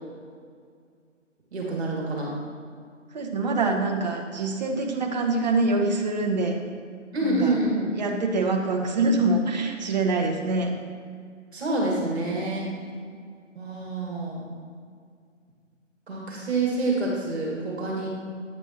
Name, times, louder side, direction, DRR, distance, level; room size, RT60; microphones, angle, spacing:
voice 1, 1.5-2.3 7.1-7.9 11.5-12.7 13.6-14.5 16.1-18.1, right 2 dB, 55° right, -3 dB, 2.0 m, -27 dB
voice 2, 3.1-6.6 7.2-7.6 7.9-10.7, right 3 dB, 35° right, 2 dB, 0.8 m, -25 dB
8.8 x 7.9 x 2.8 m, 2.1 s
figure-of-eight pair, 145°, 39 cm